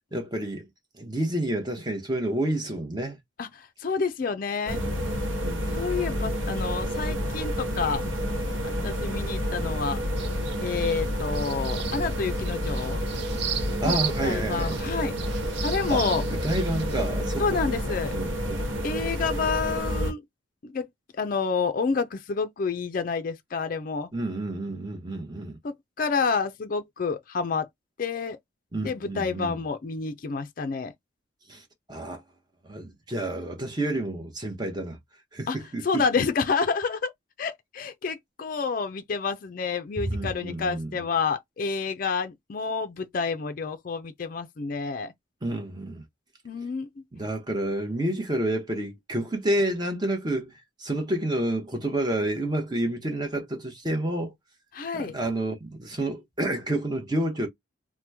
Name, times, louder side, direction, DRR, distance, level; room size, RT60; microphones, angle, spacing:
voice 1, 0.1-0.7 0.9-3.2 5.4-5.9 13.8-14.8 15.9-16.0 16.3-17.6 18.1-18.7 24.1-25.6 28.7-29.6 31.5-32.2 32.6-35.0 35.3-36.2 40.1-41.0 45.4-46.0 47.1-50.5 50.8-54.3 54.9-57.5, right 1 dB, 20° right, 0.7 m, -29 dB
voice 2, 3.4-4.8 5.7-8.0 8.8-10.0 10.6-13.0 13.8-14.0 14.2-15.2 15.6-16.2 17.4-18.1 18.8-20.2 20.6-20.9 21.1-24.1 25.6-27.7 28.0-28.4 28.8-30.9 35.5-35.6 35.8-37.1 37.4-45.1 46.4-47.0 54.7-55.2, left 5 dB, 45° left, 0.4 m, -29 dB
sound 1, 4.7-20.1, equal, 75° right, 1.1 m, -29 dB
sound 2, 10.2-17.1, right 8 dB, 55° right, 0.4 m, -37 dB
2.9 x 2.1 x 3.4 m
head